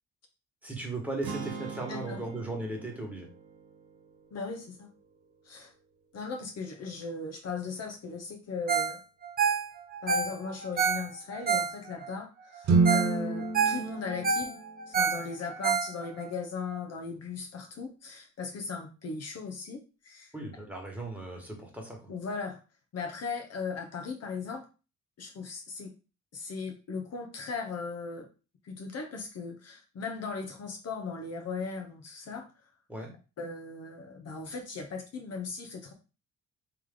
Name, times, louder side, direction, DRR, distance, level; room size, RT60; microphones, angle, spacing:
voice 1, 0.6-3.3 20.3-22.1 32.9-33.1, right 2 dB, 5° right, -1 dB, 1.6 m, -37 dB
sound 1, 1.2-5.4, right 6 dB, 90° right, 1.1 m, -44 dB
voice 2, 1.9-2.2 4.3-4.9 5.4-5.7 6.1-9.0 10.0-14.6 14.9-20.3 22.1-22.6 22.9-24.6 25.2-25.9 26.3-28.3 28.6-32.5 33.4-35.9, left 4 dB, 55° left, 4 dB, 0.9 m, -38 dB
Ringtone, 8.7-9.0 9.2-12.1 12.6-12.7 12.9-13.1 13.4-16.3 16.7-16.8, right 6 dB, 30° right, 0.6 m, -28 dB
sound 2, 12.6-15.1, right 4 dB, 60° right, 1.1 m, -27 dB
3.4 x 3.1 x 3.8 m, 0.32 s
cardioid pair, 90°, 30 cm